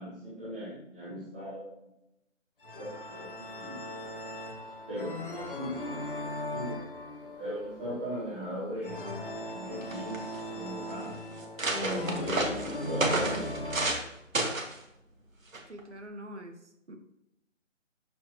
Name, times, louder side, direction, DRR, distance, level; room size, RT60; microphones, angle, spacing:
voice 1, 0.0-1.8 2.8-3.7 4.9-5.8 6.5-6.8 7.2-9.0 9.5-10.3 10.5-11.1 11.8-13.5, equal, 5° right, -10 dB, 1.4 m, -38 dB
sound 1, 2.6-13.9, left 1 dB, 45° left, 1.5 m, -38 dB
sound 2, 9.5-9.6 9.8-10.4 11.0-11.1 11.4-14.1 14.3-14.8 15.5-15.8, right 2 dB, 85° right, 2.2 m, -31 dB
voice 2, 15.7-17.0, equal, 60° right, 5 dB, 1.7 m, -45 dB
13.0 x 5.7 x 3.0 m, 0.83 s
figure-of-eight pair, 175°, 39 cm